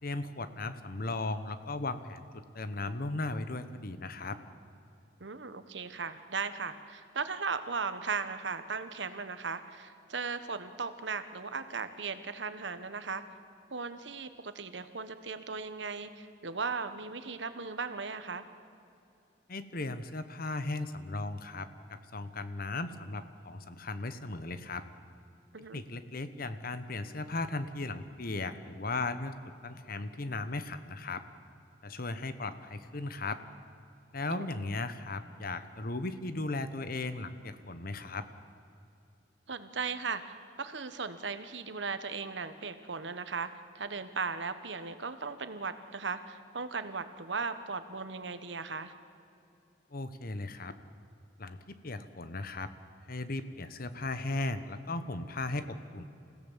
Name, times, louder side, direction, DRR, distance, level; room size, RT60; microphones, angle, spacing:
voice 1, 0.0-4.4 19.5-24.8 25.7-31.2 31.8-33.4 34.1-38.2 49.9-50.7 51.4-52.7 53.1-56.0, left 2 dB, 55° left, 11 dB, 1.2 m, -37 dB
voice 2, 5.2-13.2 13.7-18.4 25.5-25.8 34.3-34.7 39.5-43.5 43.7-48.9, right 5 dB, 80° right, 11 dB, 1.3 m, -37 dB
27.5 x 16.5 x 7.5 m, 2.8 s
head